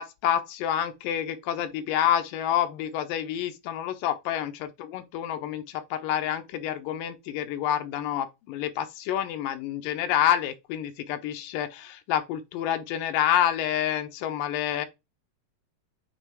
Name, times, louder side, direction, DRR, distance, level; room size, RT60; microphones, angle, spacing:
voice 1, 0.0-14.9, left 10 dB, 85° left, 2.5 m, -28 dB
7.2 x 3.3 x 4.7 m
omnidirectional pair, 3.9 m